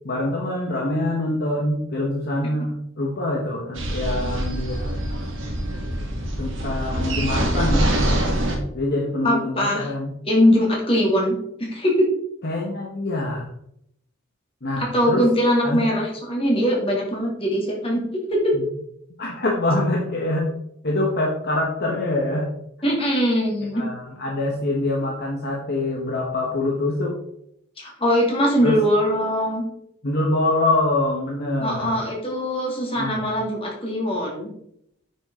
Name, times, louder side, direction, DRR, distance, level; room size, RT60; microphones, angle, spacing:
voice 1, 0.0-5.0 6.4-8.4 8.7-10.1 12.4-13.5 14.6-15.3 15.6-15.8 18.5-18.7 19.2-20.5 20.8-22.5 23.7-27.2 28.6-28.8 30.0-32.0 33.0-33.2, left 2 dB, 50° left, -1 dB, 1.4 m, -25 dB
sound 1, 3.8-8.5, right 1 dB, 65° right, 2.1 m, -24 dB
voice 2, 9.2-9.9 10.2-12.1 14.8-18.5 22.8-23.8 27.8-29.6 31.6-34.5, equal, 25° left, -2 dB, 2.7 m, -21 dB
9.2 x 6.4 x 3.8 m, 0.73 s
head